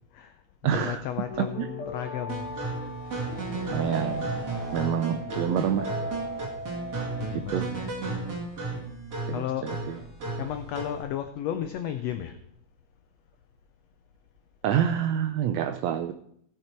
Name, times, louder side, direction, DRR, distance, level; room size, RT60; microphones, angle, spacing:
voice 1, 0.1-2.5 3.6-3.8 6.7-8.3 8.7-8.9 9.3-9.7 10.4-12.4, left 10 dB, 80° left, 8 dB, 1.5 m, -34 dB
voice 2, 0.6-1.0 1.4-1.7 3.7-4.4 4.7-5.9 7.3-7.7 9.3-10.0 14.6-16.1, right 9 dB, 90° right, 9 dB, 1.5 m, -27 dB
sound 1, 1.1-7.5, left 1 dB, 45° left, 2.7 m, -38 dB
sound 2, 2.3-11.0, right 3 dB, 35° right, 2.7 m, -34 dB
16.5 x 6.0 x 4.4 m, 0.71 s
omnidirectional pair, 3.6 m